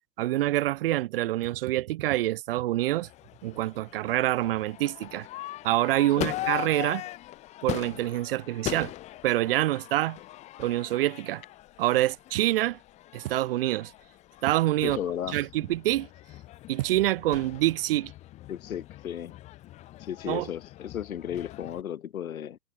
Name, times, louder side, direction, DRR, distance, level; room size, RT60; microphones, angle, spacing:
voice 1, 0.2-3.1 3.4-5.3 5.6-7.0 7.6-8.9 9.2-10.2 10.6-11.4 11.8-12.8 13.1-13.9 14.4-15.0 15.3-16.1 16.7-18.1 20.3-20.5, right 15 dB, 40° right, 0.7 m, -26 dB
Crowd / Fireworks, 2.8-21.8, left 15 dB, 15° left, 0.7 m, -41 dB
voice 2, 14.8-15.4 18.5-19.3 20.0-22.6, left 9 dB, 60° left, 2.6 m, -34 dB
figure-of-eight pair, 110°, 47 cm